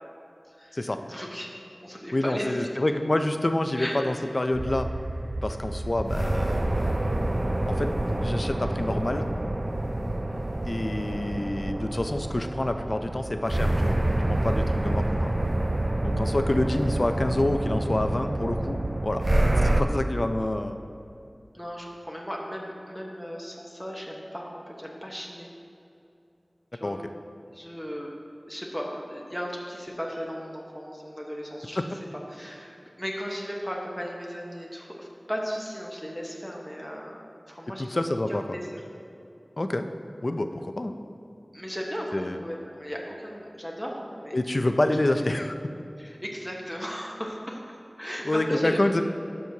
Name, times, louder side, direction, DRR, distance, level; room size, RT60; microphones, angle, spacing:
voice 1, 0.5-1.5 1.8-2.7 3.8-4.0 10.3-10.5 21.5-25.5 26.8-27.0 27.5-28.1 28.5-31.9 32.3-37.2 37.5-37.9 38.3-38.8 41.5-44.3 46.0-48.8, equal, ahead, -2 dB, 1.0 m, -36 dB
voice 2, 2.1-4.9 5.4-6.6 7.7-9.3 10.7-14.0 14.3-15.3 16.0-19.2 19.6-20.8 26.8-27.0 37.8-38.4 39.6-39.9 40.2-40.9 42.1-42.4 44.3-45.5 48.2-49.0, left 1 dB, 50° left, 7 dB, 0.4 m, -27 dB
sound 1, 4.5-19.8, right 1 dB, 45° right, 0.4 m, -27 dB
11.5 x 6.1 x 2.8 m, 2.7 s
wide cardioid pair, 55°, 0 cm